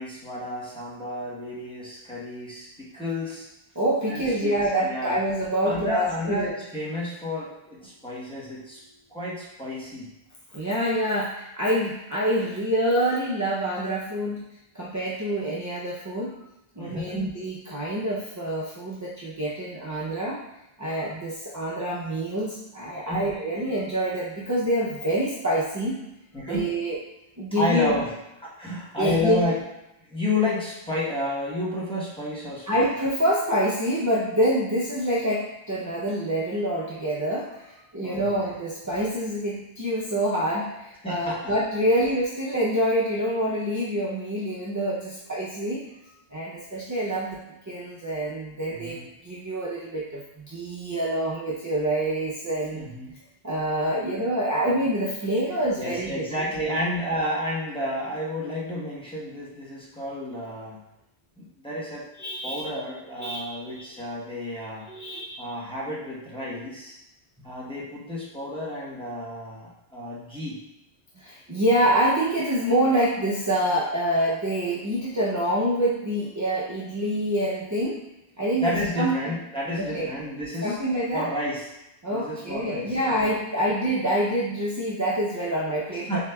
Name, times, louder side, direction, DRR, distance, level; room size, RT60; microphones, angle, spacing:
voice 1, 0.0-3.5 4.1-5.2 5.6-8.8 9.1-10.1 16.8-17.3 23.0-23.3 26.3-26.8 27.6-28.1 28.4-29.6 30.1-32.8 38.0-38.5 41.0-41.5 48.7-49.1 52.7-53.1 55.8-60.8 61.4-62.1 62.4-64.9 65.4-67.0 67.4-70.6 78.6-80.8 81.1-81.7 82.1-83.3 86.1-86.2, left 1 dB, 5° left, -7 dB, 0.9 m, -31 dB
voice 2, 3.8-6.5 10.5-14.4 14.7-16.4 16.8-20.4 20.8-26.0 26.4-27.0 27.4-28.0 29.0-29.4 32.7-45.9 46.3-52.9 53.4-56.3 56.6-56.8 62.2-62.6 63.2-63.8 64.9-65.4 71.2-78.0 78.4-79.4 79.8-80.1 80.6-81.3 82.0-86.2, right 1 dB, 30° right, -6 dB, 0.4 m, -26 dB
7.0 x 2.7 x 2.2 m, 0.91 s
omnidirectional pair, 1.1 m